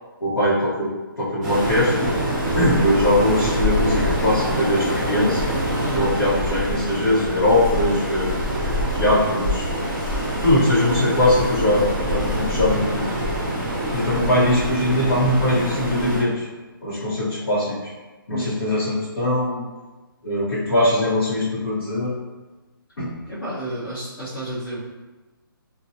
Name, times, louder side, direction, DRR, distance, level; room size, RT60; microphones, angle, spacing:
voice 1, 0.2-0.9 1.2-2.1 2.6-5.5 5.9-9.6 10.4-13.1 13.9-16.5 16.8-17.8 18.3-19.6 20.2-22.1 23.0-23.1, left 1 dB, 85° left, -10 dB, 1.0 m, -21 dB
Waves surf, 1.4-16.2, equal, ahead, 0.6 m, -25 dB
voice 2, 5.8-6.1 18.3-18.6 23.3-24.8, right 1 dB, 55° left, -11 dB, 1.1 m, -30 dB
4.1 x 2.3 x 2.7 m, 1.2 s
hypercardioid pair, 165°, 12 cm